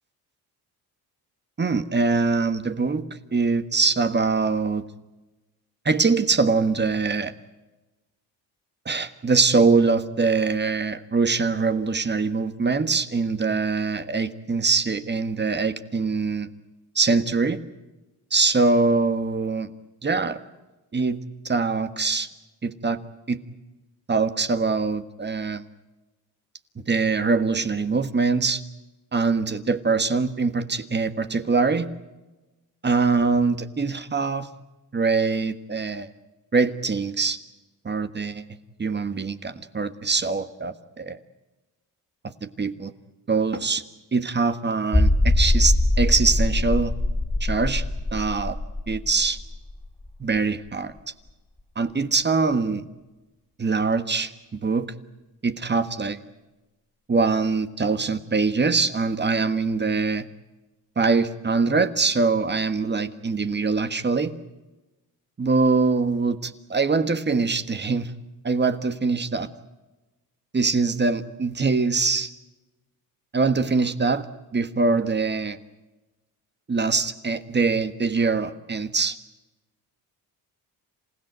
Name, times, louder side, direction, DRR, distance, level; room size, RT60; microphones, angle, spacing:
voice 1, 1.6-4.8 5.8-7.3 8.8-16.5 16.9-17.6 18.3-19.7 20.0-20.4 20.9-21.2 21.4-22.3 22.6-23.0 23.3-23.4 24.1-25.6 26.8-28.6 29.1-31.9 32.8-34.5 34.9-36.1 36.5-37.4 37.8-38.5 38.8-41.2 42.4-42.9 43.3-43.8 44.1-46.9 47.4-47.8 48.1-48.6 48.9-49.4 50.2-50.9 51.7-52.8 53.6-54.9 55.4-56.2 57.1-60.2 60.9-64.3 65.4-68.1 68.4-69.5 70.5-72.3 73.3-74.3 74.5-75.6 76.7-79.2, right 4 dB, 25° right, 10 dB, 1.5 m, -23 dB
sound 1, 44.9-50.4 50.7-50.8 51.3-51.4, left 2 dB, 15° left, 2.8 m, -22 dB
28.0 x 16.0 x 9.4 m, 1.1 s
cardioid pair, 90°, 39 cm